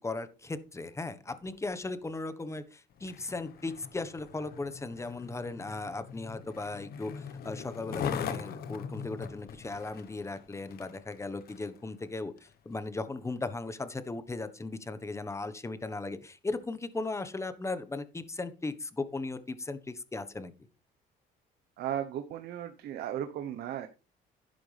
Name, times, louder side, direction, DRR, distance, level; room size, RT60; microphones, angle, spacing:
voice 1, 0.0-20.5, left 3 dB, 15° left, 12 dB, 1.3 m, -37 dB
Skateboard, 2.9-11.8 12.4-12.5, left 7 dB, 65° left, 1.3 m, -41 dB
voice 2, 21.8-23.9, right 10 dB, 70° right, 8 dB, 1.1 m, -35 dB
11.5 x 10.5 x 3.5 m, 0.31 s
cardioid pair, 110°, 17 cm